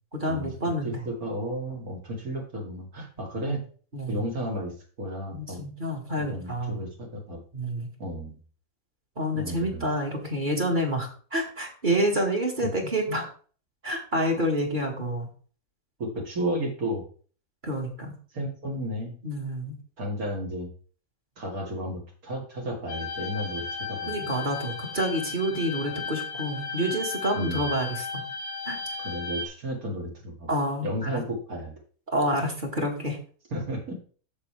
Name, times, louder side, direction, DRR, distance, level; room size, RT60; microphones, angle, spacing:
voice 1, 0.1-1.0 3.9-4.2 5.3-6.8 7.5-7.9 9.2-13.3 13.8-15.3 17.6-18.1 19.2-19.8 24.1-28.2 28.7-28.8 30.5-31.2 32.1-33.2, equal, 35° right, 1 dB, 1.7 m, -28 dB
voice 2, 0.8-3.6 4.1-4.7 5.0-5.6 6.2-7.4 8.0-8.4 9.3-9.8 16.0-17.0 18.3-19.1 20.0-20.7 21.4-24.1 27.3-27.7 29.0-30.5 30.8-31.7 33.5-34.0, equal, 70° right, 0 dB, 2.5 m, -33 dB
sound 1, 22.9-29.5, left 4 dB, 90° left, 1.4 m, -35 dB
8.4 x 7.0 x 3.3 m, 0.41 s
omnidirectional pair, 1.6 m